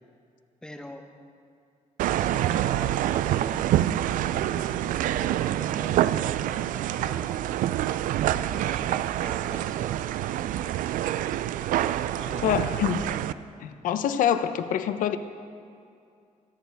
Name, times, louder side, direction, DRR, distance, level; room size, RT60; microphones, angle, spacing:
voice 1, 0.6-1.1 2.1-3.7 4.2-7.4 8.5-10.7 11.9-13.0, left 1 dB, 5° left, 4 dB, 0.9 m, -44 dB
sound 1, 2.0-13.3, right 12 dB, 85° right, 0.4 m, -26 dB
voice 2, 12.4-13.1 13.6-15.2, left 9 dB, 85° left, 10 dB, 0.7 m, -25 dB
26.5 x 10.5 x 3.5 m, 2.4 s
cardioid pair, 160°, 13 cm